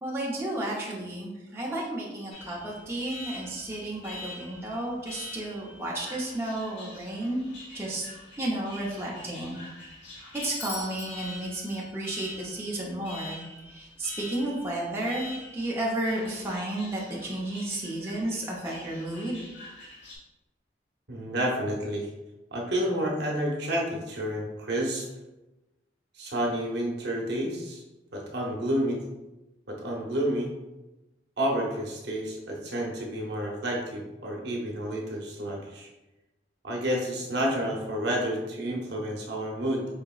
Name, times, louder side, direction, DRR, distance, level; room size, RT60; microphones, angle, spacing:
voice 1, 0.0-7.4 7.7-8.1 8.4-9.6 10.3-19.4, right 1 dB, 15° right, -5 dB, 0.6 m, -32 dB
Alarm, 2.3-20.2, left 1 dB, 90° left, 1.3 m, -45 dB
Bell / Doorbell, 10.4-12.3, left 2 dB, 35° left, 0.6 m, -41 dB
voice 2, 21.1-22.1 22.5-25.1 26.1-27.8 28.1-29.0 29.7-30.5 31.4-35.9 36.6-39.9, equal, 70° right, -1 dB, 0.8 m, -30 dB
4.8 x 2.9 x 2.3 m, 1.0 s
head